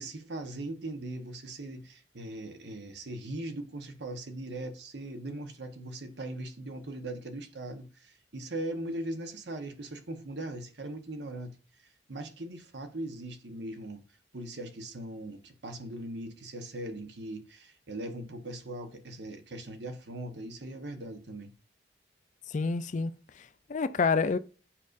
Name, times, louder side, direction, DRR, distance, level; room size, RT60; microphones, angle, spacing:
voice 1, 0.0-11.6 12.1-14.0 14.3-21.5, right 1 dB, 70° right, 1.1 m, -40 dB
voice 2, 22.5-24.4, left 4 dB, 45° left, 0.4 m, -29 dB
7.3 x 5.2 x 2.5 m
head